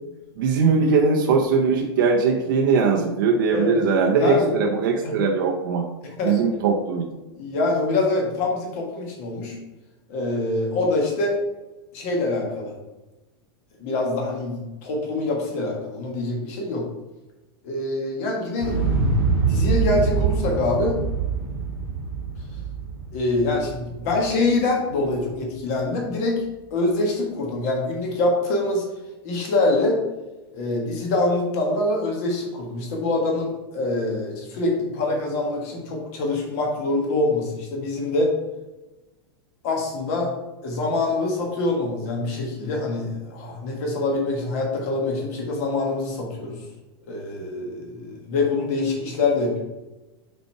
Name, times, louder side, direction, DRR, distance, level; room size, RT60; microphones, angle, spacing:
voice 1, 0.4-5.8 6.2-7.1, right 4 dB, 55° right, 0 dB, 0.8 m, -20 dB
voice 2, 6.0-6.4 7.4-9.5 10.1-11.4 11.9-12.7 13.8-16.9 17.6-18.7 19.4-21.0 23.1-26.4 26.7-28.8 29.2-30.0 30.5-38.3 39.6-40.3 40.6-46.6 47.1-49.6, left 2 dB, 40° left, 0 dB, 1.5 m, -25 dB
Explosion, 18.6-24.6 24.9-25.0, right 4 dB, 15° right, 1.3 m, -24 dB
5.4 x 4.4 x 4.6 m, 1.1 s
supercardioid pair, 180°, 13 cm